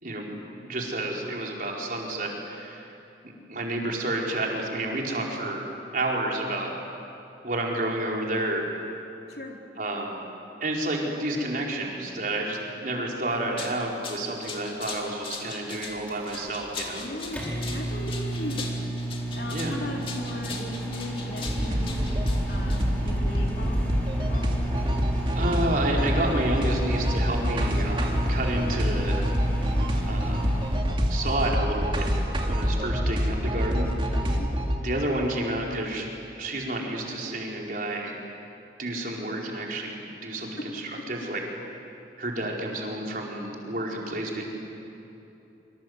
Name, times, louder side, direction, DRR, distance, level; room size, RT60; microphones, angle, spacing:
voice 1, 0.0-0.3 0.6-2.9 3.5-5.6 5.9-6.7 7.4-8.7 9.8-10.2 10.6-17.0 19.5-19.8 25.3-29.2 30.1-30.4 31.1-32.1 32.5-33.9 34.8-36.1 36.4-38.2 38.8-41.4 42.2-44.4, right 1 dB, 50° right, -1 dB, 4.8 m, -30 dB
voice 2, 9.3-9.6 17.0-18.7 19.3-22.0 22.5-24.6 34.1-34.5 40.4-41.3, left 1 dB, 60° left, 1 dB, 3.7 m, -38 dB
sound 1, 13.3-23.2, left 4 dB, 30° left, 2.7 m, -40 dB
Microwave oven, 15.8-30.9, right 1 dB, 10° left, 5.5 m, -33 dB
sound 2, 21.5-34.8, equal, 30° right, 2.7 m, -26 dB
26.5 x 25.5 x 8.1 m, 2.9 s
head